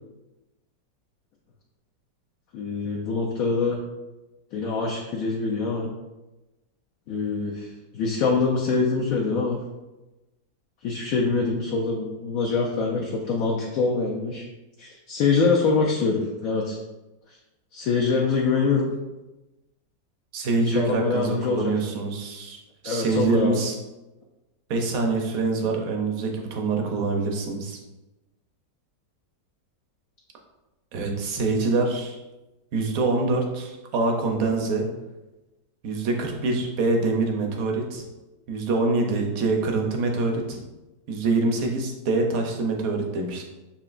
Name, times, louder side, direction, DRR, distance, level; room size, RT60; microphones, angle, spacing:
voice 1, 2.5-3.8 4.5-5.9 7.1-7.7 7.9-9.6 10.8-14.4 14.8-16.8 17.3-17.4 17.7-18.9 20.6-21.7 22.8-23.6, left 4 dB, 70° left, -1 dB, 0.9 m, -24 dB
voice 2, 20.3-23.7 24.7-27.8 30.9-32.2 32.7-34.9 35.8-38.0 38.5-40.6 41.1-43.4, right 3 dB, 60° right, 2 dB, 1.0 m, -25 dB
6.9 x 2.8 x 2.5 m, 1.1 s
omnidirectional pair, 1.9 m